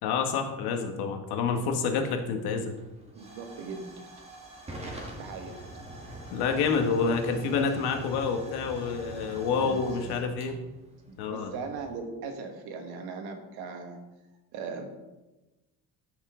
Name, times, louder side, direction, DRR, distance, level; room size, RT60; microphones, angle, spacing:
voice 1, 0.0-2.7 6.3-10.6 11.2-11.5, left 5 dB, 90° left, 5 dB, 1.4 m, -28 dB
Hiss / Fire / Tick, 1.5-11.9, right 1 dB, 15° right, 1.5 m, -45 dB
voice 2, 3.1-4.0 5.2-5.6 9.4-10.7 11.1-14.0 14.5-14.9, right 4 dB, 80° right, 5 dB, 1.6 m, -39 dB
14.0 x 5.6 x 3.7 m, 1.1 s
cardioid pair, 180°, 38 cm